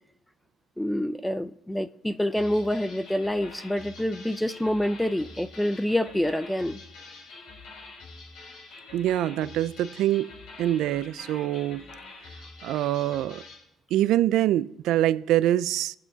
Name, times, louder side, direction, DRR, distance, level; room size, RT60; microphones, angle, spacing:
voice 1, 0.8-6.8, left 1 dB, 5° left, 0.5 m, -27 dB
sound 1, 2.4-13.6, left 3 dB, 85° left, 4.9 m, -46 dB
voice 2, 8.9-10.3 10.6-11.9 12.6-13.4 13.9-15.9, right 13 dB, 90° right, 0.4 m, -24 dB
22.5 x 8.4 x 4.0 m
cardioid pair, 130°, 0 cm